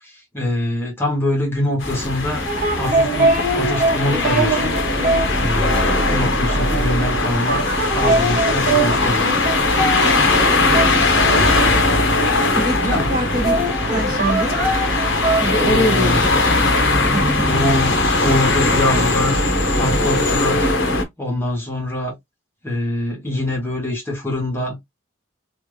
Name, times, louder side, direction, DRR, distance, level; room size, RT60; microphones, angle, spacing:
voice 1, 0.0-2.4 2.8-5.0 5.4-7.6 7.9-9.4 12.8-13.1 15.6-16.2 17.5-19.4 19.7-20.7 21.2-22.1 22.6-24.8, left 1 dB, 10° left, 1.0 m, -24 dB
sound 1, 1.8-21.0, left 2 dB, 65° left, 1.0 m, -19 dB
sound 2, 2.5-12.6 12.9-15.6, right 2 dB, 40° right, 1.4 m, -23 dB
voice 2, 12.6-13.6 13.9-14.6 15.4-16.3 17.0-17.5, right 1 dB, 20° right, 0.8 m, -25 dB
3.3 x 2.4 x 3.1 m
head